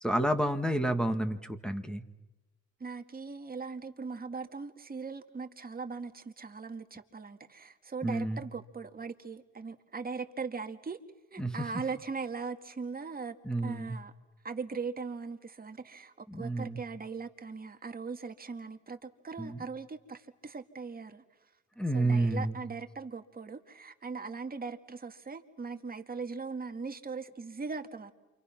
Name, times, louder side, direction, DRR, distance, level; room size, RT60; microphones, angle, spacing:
voice 1, 0.0-2.0 8.0-8.4 11.4-11.5 13.4-13.9 16.3-16.8 19.4-19.6 21.8-22.6, right 1 dB, 5° left, 8 dB, 1.9 m, -30 dB
voice 2, 2.8-11.0 11.3-13.4 13.6-14.1 14.4-21.5 21.9-28.1, right 4 dB, 30° right, 5 dB, 2.0 m, -40 dB
28.0 x 26.0 x 6.0 m, 1.1 s
cardioid pair, 90°, 30 cm